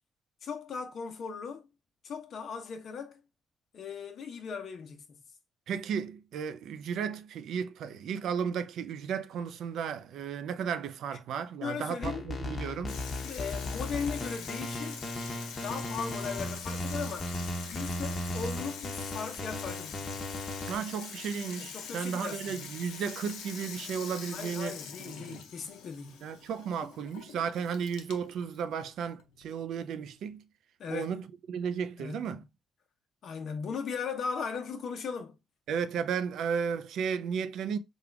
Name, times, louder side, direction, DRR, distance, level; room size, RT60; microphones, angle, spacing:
voice 1, 0.4-1.7 2.0-3.2 3.7-5.2 11.6-12.4 13.2-15.1 15.6-17.3 17.6-20.3 21.7-22.7 24.3-26.2 30.8-31.1 32.0-32.4 33.2-35.4, left 6 dB, 60° left, 0.9 m, -38 dB
voice 2, 5.7-13.0 20.7-25.4 26.2-30.5 30.9-32.4 35.7-37.8, right 7 dB, 75° right, 0.4 m, -34 dB
sound 1, 12.0-20.7, left 1 dB, 35° left, 1.0 m, -36 dB
Water tap faucet / Sink (filling or washing), 12.9-30.3, left 7 dB, 90° left, 0.6 m, -44 dB
3.5 x 2.4 x 3.3 m
cardioid pair, 90°, 0 cm